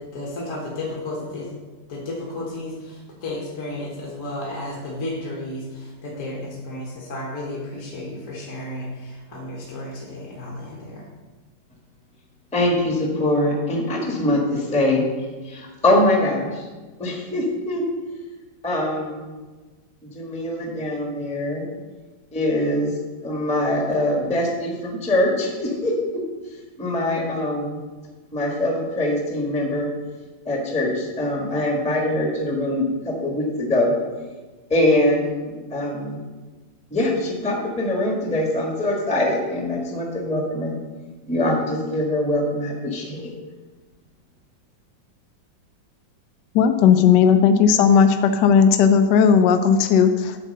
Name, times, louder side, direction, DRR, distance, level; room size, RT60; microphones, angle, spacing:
voice 1, 0.0-1.5 1.9-11.1, left 1 dB, 45° left, -4 dB, 1.8 m, -33 dB
voice 2, 12.5-15.0 15.4-16.7 17.0-17.8 18.6-19.4 20.0-21.7 22.3-22.9 23.2-25.9 26.8-27.8 28.3-29.9 30.4-33.9 34.7-36.2 36.9-40.7 41.2-43.3, left 1 dB, 5° left, -1 dB, 1.2 m, -23 dB
voice 3, 46.5-50.4, left 7 dB, 75° left, 8 dB, 1.1 m, -15 dB
8.5 x 5.0 x 6.5 m, 1.3 s
omnidirectional pair, 2.1 m